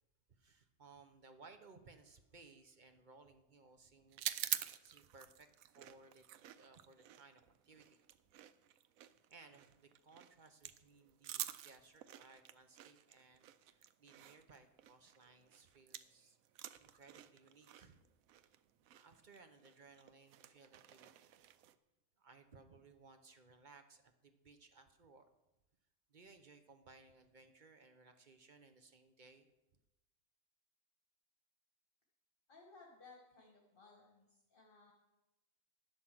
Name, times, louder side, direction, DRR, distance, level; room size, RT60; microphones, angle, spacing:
voice 1, 0.3-4.4 4.6-5.5 5.7-6.2 6.5-8.0 9.3-16.4 16.8-18.0 18.4-18.5 18.9-21.1 22.2-25.2 26.1-29.5, right 4 dB, 40° right, 7 dB, 0.8 m, -62 dB
sound 1, 4.1-16.2 16.5-21.8, right 12 dB, 85° right, 1.0 m, -48 dB
voice 2, 32.5-34.9, left 3 dB, 40° left, -1 dB, 1.8 m, -61 dB
11.5 x 8.9 x 6.1 m, 0.99 s
omnidirectional pair, 1.4 m